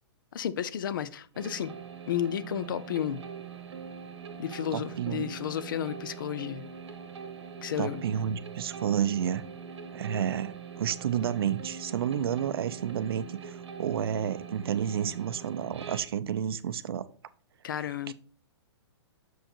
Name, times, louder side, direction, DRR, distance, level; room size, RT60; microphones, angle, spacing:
voice 1, 0.3-1.7 2.1-3.2 4.4-6.7 7.6-8.0 17.6-18.1, left 10 dB, 50° left, 0.5 m, -32 dB
sound 1, 1.3-16.0, right 6 dB, 85° right, 1.2 m, -43 dB
voice 2, 4.7-5.3 7.8-9.4 9.9-17.0 18.1-18.2, right 9 dB, 60° right, 0.5 m, -30 dB
6.5 x 4.7 x 4.4 m
hypercardioid pair, 170°, 14 cm